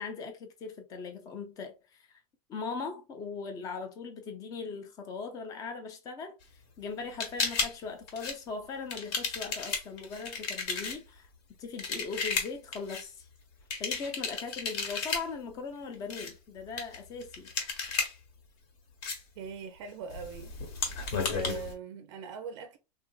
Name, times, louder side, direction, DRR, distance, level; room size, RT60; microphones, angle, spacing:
voice 1, 0.0-2.2 2.5-11.3 11.6-13.3 13.8-17.5, left 4 dB, 20° left, 0.5 m, -40 dB
sound 1, 7.2-7.7 8.1-8.4 8.9-11.0 11.8-13.0 13.7-15.3 15.9-16.3 16.8-18.1 19.0-19.2 20.1-21.7, left 4 dB, 40° left, 0.9 m, -33 dB
voice 2, 19.4-20.5 20.9-21.0 21.3-22.8, right 6 dB, 55° right, 0.5 m, -41 dB
3.7 x 2.4 x 2.3 m
supercardioid pair, 170°, 19 cm